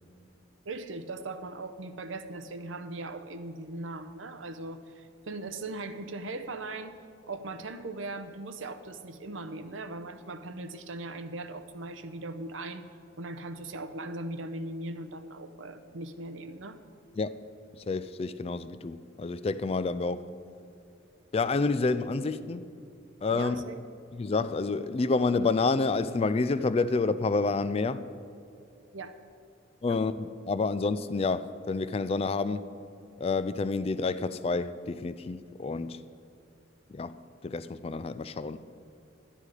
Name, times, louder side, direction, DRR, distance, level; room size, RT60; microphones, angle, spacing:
voice 1, 0.6-6.9 7.3-12.9 13.2-16.8 23.3-23.8 28.9-29.2 29.9-30.0, right 2 dB, 80° right, 0.7 m, -39 dB
voice 2, 17.9-20.3 21.3-22.7 23.2-23.6 24.1-28.0 29.8-32.6 33.2-36.0 36.9-37.2 37.4-38.6, left 3 dB, 30° left, 0.3 m, -29 dB
12.0 x 10.0 x 4.9 m
head